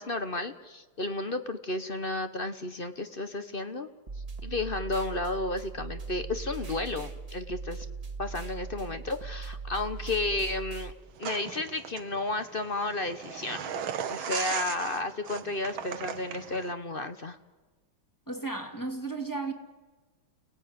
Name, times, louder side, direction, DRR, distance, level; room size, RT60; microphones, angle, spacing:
voice 1, 0.0-3.9 4.4-7.9 8.2-10.9 11.2-13.7 14.1-17.4, left 2 dB, 35° left, 1.1 m, -32 dB
sound 1, 4.1-10.9, right 4 dB, 20° right, 1.8 m, -39 dB
sound 2, 11.2-16.7, right 8 dB, 80° right, 1.9 m, -37 dB
voice 2, 18.3-19.5, right 3 dB, 10° left, 2.4 m, -34 dB
30.0 x 18.5 x 9.7 m
omnidirectional pair, 2.2 m